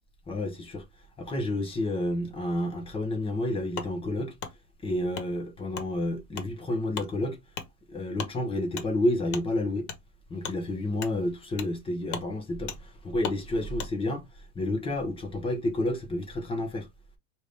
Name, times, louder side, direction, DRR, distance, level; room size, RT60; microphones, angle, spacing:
voice 1, 0.3-0.8 1.2-4.3 4.8-7.4 7.9-9.9 10.3-16.9, left 1 dB, 10° left, 0.6 m, -30 dB
Wood, 3.8-3.9 4.4-4.5 5.1-5.3 5.7-5.9 6.3-6.5 6.9-7.1 7.5-7.7 8.2-8.3 8.8-8.9 9.3-9.5 9.9-10.0 10.4-10.6 11.0-11.1 11.6-11.7 12.1-12.3 12.7-12.8 13.2-13.4 13.8-13.9, left 7 dB, 60° left, 1.2 m, -36 dB
4.9 x 2.7 x 3.3 m
supercardioid pair, 150°, 47 cm